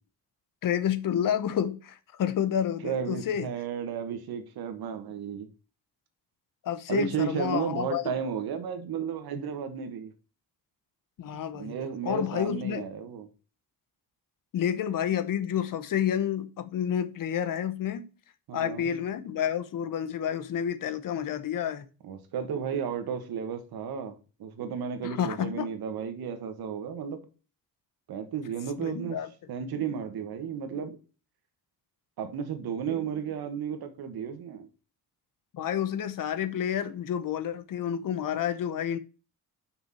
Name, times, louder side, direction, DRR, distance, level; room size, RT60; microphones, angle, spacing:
voice 1, 0.6-3.5 6.6-8.0 11.2-11.8 12.0-12.8 14.5-18.1 18.5-21.9 25.0-25.7 28.8-29.3 35.5-39.0, left 9 dB, 60° left, 0.9 m, -29 dB
voice 2, 2.8-5.5 6.9-10.1 11.5-13.3 18.5-19.0 22.0-27.2 28.1-29.2 29.5-31.0 32.2-34.7, right 7 dB, 80° right, 1.5 m, -33 dB
6.1 x 5.8 x 5.7 m
wide cardioid pair, 165°, 37 cm